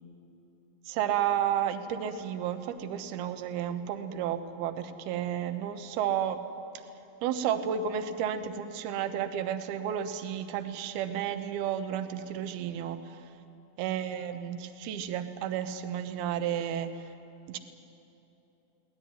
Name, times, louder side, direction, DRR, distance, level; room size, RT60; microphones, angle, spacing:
voice 1, 0.9-6.4 7.2-13.2 13.8-17.1 17.5-17.6, right 9 dB, 70° right, 9 dB, 2.6 m, -32 dB
23.5 x 18.5 x 9.4 m, 3.0 s
omnidirectional pair, 5.3 m